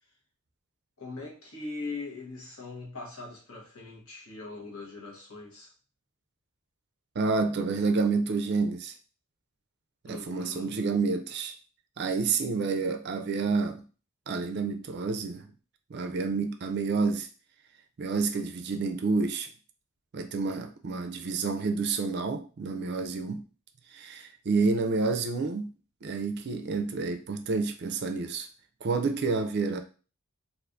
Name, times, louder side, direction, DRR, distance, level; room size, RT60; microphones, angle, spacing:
voice 1, 1.0-5.7 10.1-10.8, left 3 dB, 70° left, 1.1 m, -41 dB
voice 2, 7.2-8.9 10.0-11.5 12.0-13.8 14.3-15.5 15.9-17.3 18.0-19.5 20.1-23.4 23.9-25.7 26.0-28.5 28.8-29.8, right 4 dB, 50° right, 0.4 m, -29 dB
2.6 x 2.5 x 3.4 m
head